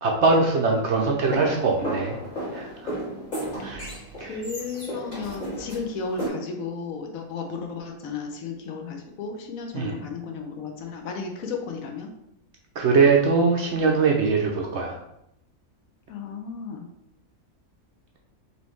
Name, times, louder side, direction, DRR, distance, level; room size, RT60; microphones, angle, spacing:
voice 1, 0.0-2.2 2.5-2.9 3.6-3.9 4.2-4.3 9.7-9.9 12.8-15.0, right 4 dB, 65° right, 0 dB, 0.7 m, -22 dB
sound 1, 1.2-6.3, equal, 30° left, 1.5 m, -33 dB
voice 2, 4.2-12.1 16.1-16.8, left 5 dB, 70° left, 3 dB, 1.0 m, -34 dB
4.0 x 3.1 x 3.1 m, 0.79 s
omnidirectional pair, 1.5 m